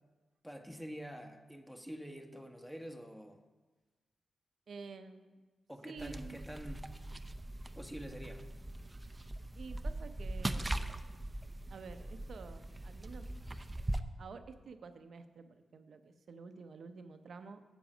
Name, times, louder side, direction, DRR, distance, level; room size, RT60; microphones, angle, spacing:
voice 1, 0.4-3.4 5.7-6.9 7.7-8.4, equal, 5° left, 4 dB, 1.3 m, -46 dB
voice 2, 4.7-5.4 5.8-6.4 9.6-11.0 11.7-13.3 14.2-17.6, right 4 dB, 65° right, 9 dB, 0.7 m, -50 dB
sound 1, 6.0-14.0, right 1 dB, 25° right, 0.6 m, -41 dB
7.9 x 7.2 x 6.2 m, 1.3 s
supercardioid pair, 40°, 0 cm